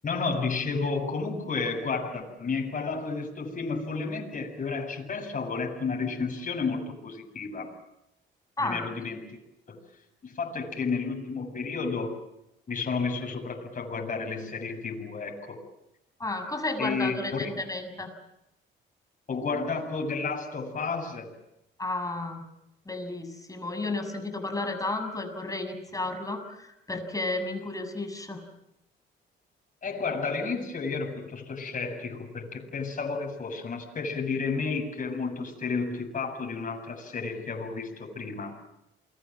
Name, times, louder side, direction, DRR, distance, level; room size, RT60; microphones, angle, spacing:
voice 1, 0.0-7.7 8.6-9.4 9.7-9.8 10.2-12.2 12.7-15.6 16.8-17.5 19.3-21.3 29.8-38.6, left 4 dB, 40° left, 2 dB, 7.8 m, -32 dB
voice 2, 8.6-9.1 16.2-18.1 21.8-22.4 22.8-28.4, left 2 dB, 15° left, 6 dB, 6.9 m, -32 dB
29.5 x 23.0 x 7.6 m, 0.84 s
cardioid pair, 90°, 20 cm